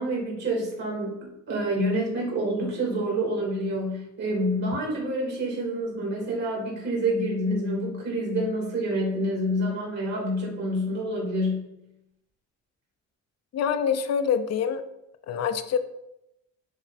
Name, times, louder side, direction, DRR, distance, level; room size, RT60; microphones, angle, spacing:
voice 1, 0.0-11.7, right 1 dB, 60° right, -3 dB, 2.8 m, -27 dB
voice 2, 13.5-14.8 15.3-15.8, left 7 dB, 60° left, 10 dB, 0.6 m, -25 dB
9.7 x 3.5 x 4.1 m, 0.88 s
cardioid pair, 90°, 30 cm